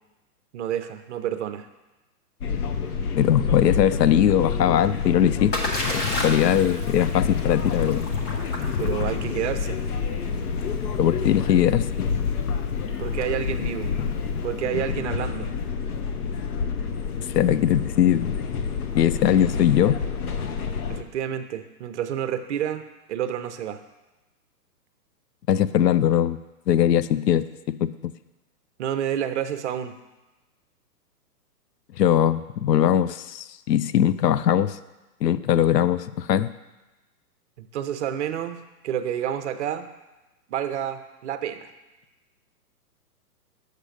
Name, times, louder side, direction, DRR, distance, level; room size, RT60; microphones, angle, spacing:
voice 1, 0.5-1.7 8.8-9.8 13.0-13.9 14.4-15.5 20.9-23.8 28.8-29.9 37.6-39.9 40.5-41.7, right 10 dB, 50° right, 10 dB, 0.6 m, -29 dB
sound 1, 2.4-21.0, left 6 dB, 70° left, 0.9 m, -28 dB
voice 2, 3.2-5.5 5.9-8.1 11.0-12.1 17.3-18.3 18.9-20.0 25.5-26.4 26.7-27.9 32.0-34.8 35.2-36.5, left 10 dB, 85° left, 15 dB, 0.6 m, -21 dB
Splash splatter, 4.8-14.7, left 1 dB, 20° left, 0.8 m, -35 dB
6.6 x 6.6 x 4.9 m, 1.1 s
hypercardioid pair, 140°, 47 cm